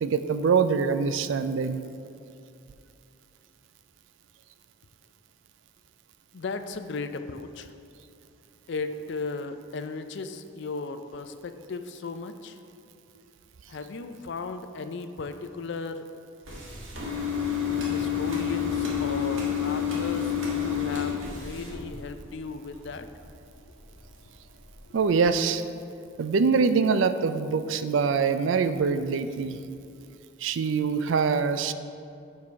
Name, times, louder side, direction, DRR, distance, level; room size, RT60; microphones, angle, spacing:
voice 1, 0.0-1.8 24.9-25.6 26.2-29.6 30.4-31.7, right 5 dB, 70° right, 11 dB, 0.4 m, -24 dB
voice 2, 6.3-7.7 8.7-12.6 13.7-16.0 17.9-23.1 24.9-25.0 29.4-29.6, left 4 dB, 60° left, 9 dB, 0.4 m, -36 dB
sound 1, 16.4-22.4 22.7-23.5 23.9-24.2 24.7-24.8 25.0-25.1, left 7 dB, 85° right, 1.6 m, -29 dB
sound 2, 17.2-22.6 23.8-24.1, equal, ahead, 1.7 m, -48 dB
7.4 x 4.7 x 5.6 m, 2.6 s
head